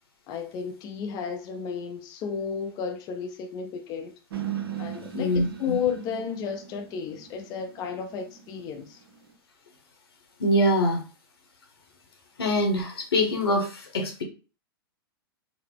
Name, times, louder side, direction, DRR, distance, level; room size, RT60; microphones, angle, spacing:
voice 1, 0.3-4.1 4.8-9.0, left 6 dB, 30° left, 0.5 m, -33 dB
sound 1, 4.3-9.3, right 10 dB, 75° right, 0.8 m, -38 dB
voice 2, 5.1-5.7 10.4-11.0 12.4-14.2, left 1 dB, 80° left, 1.2 m, -24 dB
4.0 x 2.1 x 3.5 m
hypercardioid pair, 120°, 13 cm